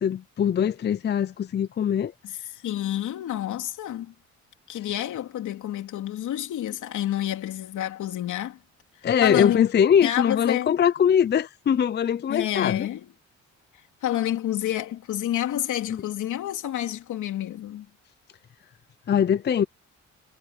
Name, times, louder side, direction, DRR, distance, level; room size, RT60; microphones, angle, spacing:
voice 1, 0.0-2.1 9.0-12.9 15.9-16.0 19.1-19.6, left 8 dB, 35° left, 0.5 m, -22 dB
voice 2, 2.6-4.1 4.7-8.6 9.2-9.7 10.0-10.8 12.3-13.1 14.0-17.9, left 12 dB, 80° left, 3.1 m, -29 dB
cardioid pair, 90°, 30 cm